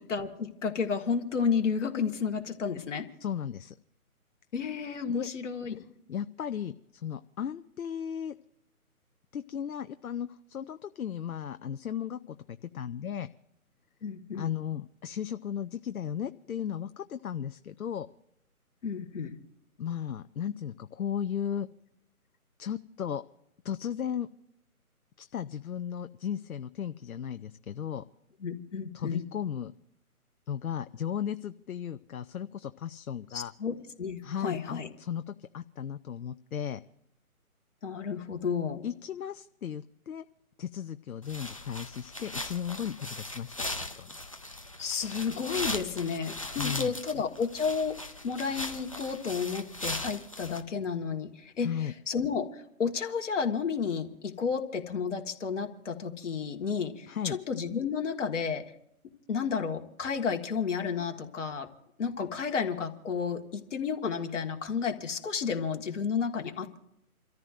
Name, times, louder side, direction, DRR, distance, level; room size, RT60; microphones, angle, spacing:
voice 1, 0.0-3.1 4.5-5.8 14.0-14.5 18.8-19.4 28.4-29.2 33.3-34.9 37.8-38.8 44.8-48.0 48.2-51.7 52.1-58.6 59.3-61.7 62.0-66.8, left 6 dB, 55° left, 4 dB, 1.8 m, -32 dB
voice 2, 3.2-3.7 5.1-5.3 5.7-5.8 6.1-6.7 7.0-8.3 9.3-13.3 14.3-18.1 19.8-21.7 22.6-23.2 23.6-24.3 25.2-28.0 28.9-29.7 30.5-33.5 34.2-36.8 38.8-40.2 40.6-43.5 44.0-44.2 46.4-46.9 51.6-51.9 57.1-57.4, left 9 dB, 70° left, 10 dB, 0.7 m, -35 dB
sound 1, 41.2-50.6, left 1 dB, 25° left, 0.5 m, -38 dB
29.0 x 14.0 x 2.6 m, 0.81 s
figure-of-eight pair, 150°, 44 cm